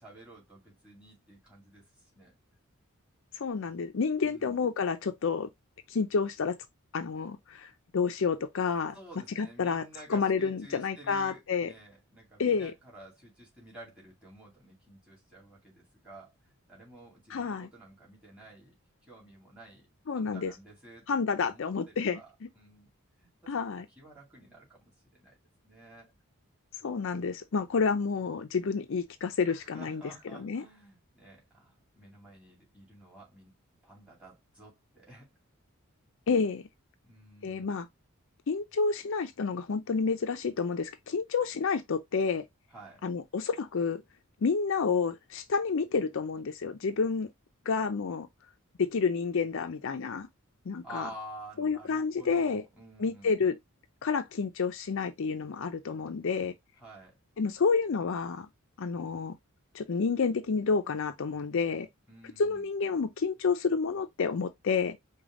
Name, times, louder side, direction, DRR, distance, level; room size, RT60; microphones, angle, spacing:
voice 1, 0.0-1.9 2.1-2.4 4.2-4.6 8.9-18.7 19.1-19.9 20.1-21.1 21.4-23.5 24.0-26.1 29.5-33.5 33.8-35.3 37.0-37.8 42.7-43.0 50.8-53.3 56.8-57.2 62.1-62.7, right 1 dB, 5° right, 2.3 m, -51 dB
voice 2, 3.4-5.5 5.9-6.6 6.9-9.0 9.4-9.8 10.1-11.7 12.4-12.7 17.3-17.7 20.1-20.5 21.1-22.2 23.5-23.9 26.8-30.0 30.4-30.6 36.3-36.6 37.4-37.9 38.5-42.4 43.0-44.0 44.4-47.3 47.7-48.3 48.8-50.3 50.7-51.1 51.6-52.6 53.0-53.6 54.0-56.5 57.4-58.5 58.8-59.4 59.7-61.9 62.4-65.0, left 5 dB, 60° left, 0.5 m, -29 dB
5.1 x 2.3 x 3.6 m
head